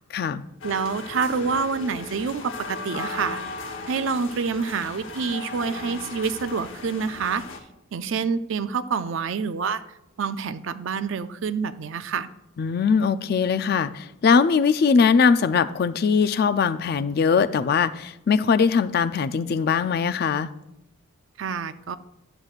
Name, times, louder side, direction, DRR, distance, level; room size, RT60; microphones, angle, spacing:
sound 1, 0.6-7.6, left 3 dB, 60° left, 0.9 m, -37 dB
voice 1, 0.6-3.4 3.9-7.4 7.9-9.8 10.2-12.3 21.4-22.0, right 5 dB, 60° right, 13 dB, 0.4 m, -27 dB
voice 2, 12.6-20.5, left 5 dB, 45° left, 13 dB, 0.3 m, -21 dB
11.0 x 7.6 x 2.4 m, 0.87 s
head